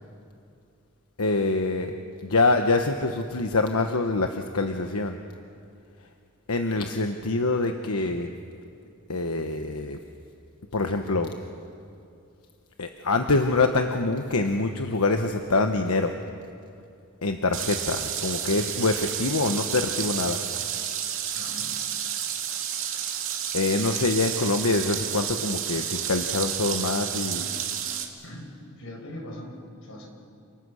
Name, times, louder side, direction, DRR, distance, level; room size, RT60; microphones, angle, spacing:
voice 1, 1.2-1.9 2.2-5.2 6.5-8.3 9.1-10.0 10.7-11.3 12.8-16.1 17.2-20.4 23.5-27.4, left 3 dB, 90° left, 5 dB, 1.2 m, -25 dB
sound 1, 17.5-28.0, right 9 dB, 65° right, 2.5 m, -30 dB
voice 2, 21.4-21.8 27.3-27.6 28.2-30.1, left 1 dB, 65° left, 2 dB, 5.4 m, -41 dB
29.0 x 25.5 x 6.5 m, 2.5 s
head